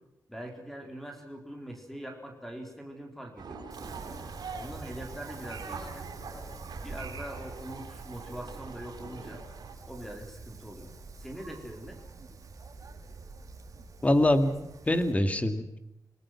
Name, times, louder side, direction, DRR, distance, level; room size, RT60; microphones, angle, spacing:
voice 1, 0.3-3.7 4.5-6.1 6.8-9.4 9.8-12.0, right 1 dB, 5° left, 3 dB, 4.1 m, -43 dB
sound 1, 3.4-9.7, right 5 dB, 85° right, 5.3 m, -43 dB
Wind, 3.7-15.1, right 3 dB, 55° right, 4.1 m, -46 dB
voice 2, 14.0-15.8, left 1 dB, 20° left, 9 dB, 2.3 m, -25 dB
28.0 x 19.5 x 6.0 m, 0.87 s
wide cardioid pair, 130°, 7 cm